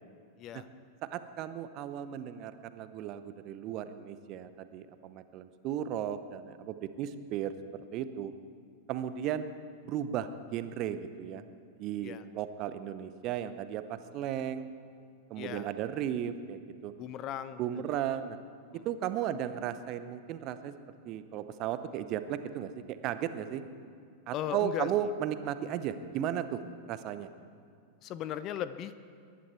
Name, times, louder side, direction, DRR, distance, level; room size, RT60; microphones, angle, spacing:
voice 1, 1.1-7.5 7.9-8.3 8.9-9.5 9.9-11.4 11.8-14.7 15.3-16.9 17.6-18.4 18.8-20.7 21.0-23.6 24.3-26.6 26.9-27.3, right 10 dB, 40° right, 12 dB, 0.7 m, -35 dB
voice 2, 15.4-15.7 17.0-17.6 17.9-18.0 18.7-18.8 24.3-24.9 28.0-29.1, left 11 dB, 35° left, 14 dB, 0.6 m, -37 dB
22.0 x 11.5 x 4.5 m, 2.3 s
figure-of-eight pair, 90°, 0 cm